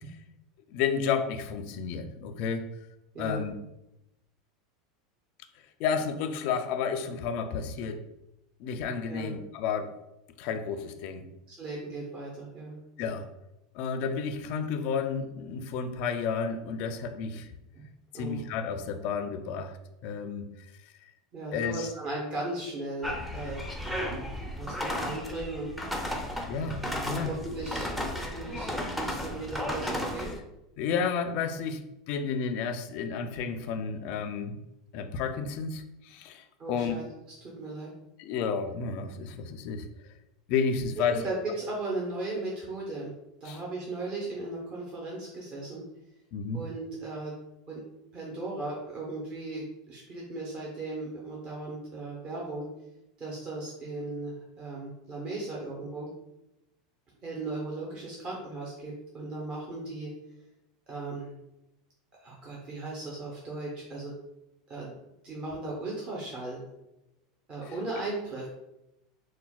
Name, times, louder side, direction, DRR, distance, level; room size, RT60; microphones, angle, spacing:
voice 1, 0.7-2.7 3.2-3.6 5.8-8.0 8.6-10.0 10.4-11.2 13.0-13.3 13.7-17.5 18.1-19.8 20.0-20.4 21.5-21.9 26.5-27.3 30.8-34.6 34.9-37.0 38.2-39.9 40.5-41.2 43.5-43.6 46.3-46.6, left 6 dB, 55° left, 8 dB, 0.3 m, -31 dB
voice 2, 3.1-3.5 9.1-9.4 11.5-12.8 18.1-18.5 21.3-24.3 24.6-25.7 27.0-30.3 36.6-37.0 37.4-37.9 41.0-43.1 43.4-45.9 46.5-47.3 47.7-47.8 48.1-52.7 53.2-56.1 57.2-60.1 60.9-61.3 62.2-64.1 64.7-64.9 65.2-66.6 67.5-68.5, right 2 dB, 35° right, -3 dB, 0.7 m, -37 dB
sound 1, 23.0-30.4, equal, ahead, 0.5 m, -34 dB
4.1 x 2.1 x 2.3 m, 0.89 s
supercardioid pair, 125°, 3 cm